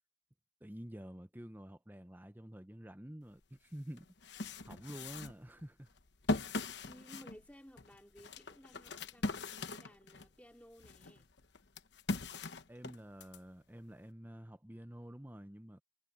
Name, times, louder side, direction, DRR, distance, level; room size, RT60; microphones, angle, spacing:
voice 1, 0.6-5.9 12.7-15.8, equal, 10° right, 0.8 m, -49 dB
sound 1, 3.4-3.5 4.0-10.3 10.8-13.4, left 2 dB, 60° left, 1.1 m, -40 dB
voice 2, 6.3-11.3, equal, 5° left, 2.9 m, -58 dB
head